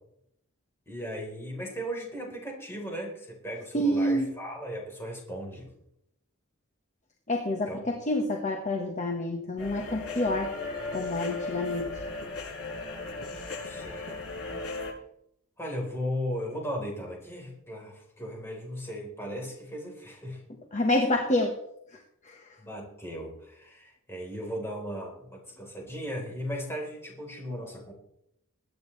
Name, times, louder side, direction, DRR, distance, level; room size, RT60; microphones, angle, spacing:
voice 1, 0.9-5.7 7.7-8.0 13.6-15.0 15.6-20.4 22.6-27.9, equal, 10° left, -1 dB, 4.0 m, -37 dB
voice 2, 3.7-4.3 7.3-10.5 10.9-11.9 20.7-21.5 22.2-22.4, left 1 dB, 35° left, 2 dB, 1.3 m, -27 dB
sound 1, 9.6-14.9, left 3 dB, 80° left, 6.7 m, -36 dB
22.0 x 9.4 x 3.3 m, 0.76 s
head